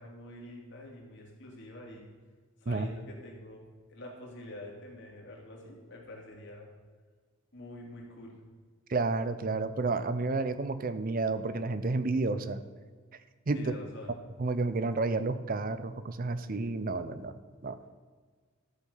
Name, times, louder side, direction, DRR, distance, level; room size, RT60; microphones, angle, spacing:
voice 1, 0.0-2.1 2.6-6.7 7.5-8.4 13.5-14.1, left 1 dB, 60° left, -1 dB, 2.9 m, -46 dB
voice 2, 8.9-12.6 13.5-13.8 14.4-17.3 17.6-17.8, right 3 dB, 45° right, 12 dB, 0.6 m, -30 dB
12.5 x 7.4 x 5.5 m, 1.5 s
head